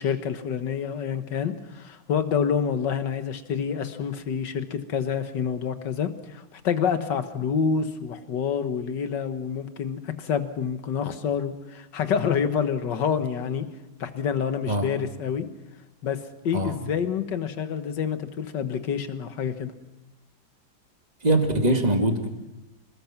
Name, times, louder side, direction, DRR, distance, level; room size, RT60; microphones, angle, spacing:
voice 1, 0.0-13.7 14.0-15.5 16.0-19.7, left 7 dB, 65° left, 9 dB, 1.9 m, -27 dB
voice 2, 21.2-22.3, right 1 dB, 20° right, 4 dB, 2.1 m, -22 dB
26.5 x 20.5 x 6.0 m, 0.94 s
omnidirectional pair, 2.1 m